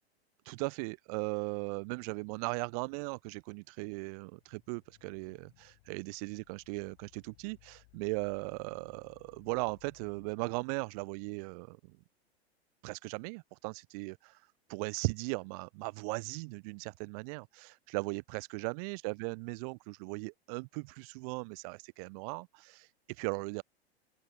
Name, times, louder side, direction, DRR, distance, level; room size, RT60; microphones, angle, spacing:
voice 1, 0.4-11.8 12.8-23.6, right 32 dB, 35° right, 0.5 m, -38 dB
sound 1, 4.3-10.4, left 34 dB, 45° left, 3.5 m, -64 dB
open air
figure-of-eight pair, 95°, 32 cm